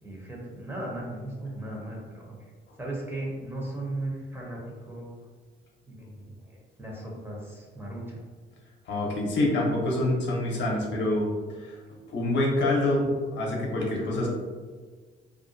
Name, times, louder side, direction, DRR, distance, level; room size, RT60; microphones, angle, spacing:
voice 1, 0.0-2.4 2.8-5.1 5.9-8.2, right 1 dB, 10° right, -3 dB, 0.6 m, -37 dB
voice 2, 8.9-11.3 11.6-11.8 12.1-14.3, left 1 dB, 65° left, -2 dB, 0.7 m, -26 dB
2.4 x 2.2 x 2.5 m, 1.5 s
cardioid pair, 90°, 20 cm